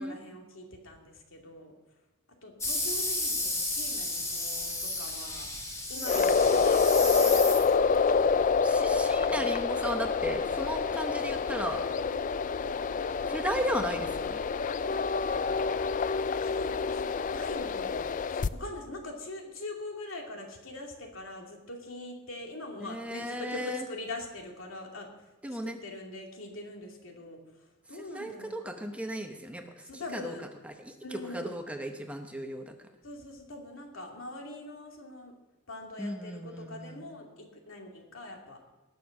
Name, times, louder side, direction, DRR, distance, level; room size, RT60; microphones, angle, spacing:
voice 1, 0.0-1.7 2.4-5.5 5.9-9.5 12.1-12.3 16.4-18.0 18.3-25.1 25.6-28.5 29.9-30.5 31.0-31.6 33.0-35.3 35.7-38.6, left 2 dB, 75° left, 1 dB, 2.5 m, -43 dB
sound 1, 2.6-8.0, left 2 dB, 15° left, 2.2 m, -33 dB
sound 2, 6.0-18.5, left 5 dB, 40° left, 0.4 m, -27 dB
voice 2, 8.6-11.8 13.3-14.4 22.8-23.8 25.4-25.8 27.9-32.9 36.0-37.1, equal, 5° right, 5 dB, 0.8 m, -36 dB
19.0 x 6.6 x 6.4 m, 1.1 s
head